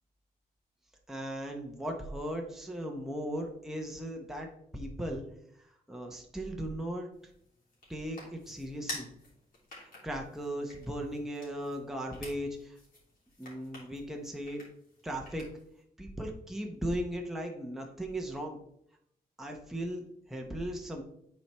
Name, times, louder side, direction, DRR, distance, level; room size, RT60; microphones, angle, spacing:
voice 1, 1.1-5.3 5.9-7.1 7.9-9.1 10.0-12.8 13.4-14.7 15.0-15.5 16.0-18.6 19.4-21.0, equal, ahead, 1 dB, 0.8 m, -37 dB
sound 1, 7.1-15.8, left 2 dB, 60° left, 3.0 m, -49 dB
8.9 x 4.3 x 3.4 m, 0.73 s
wide cardioid pair, 150°, 16 cm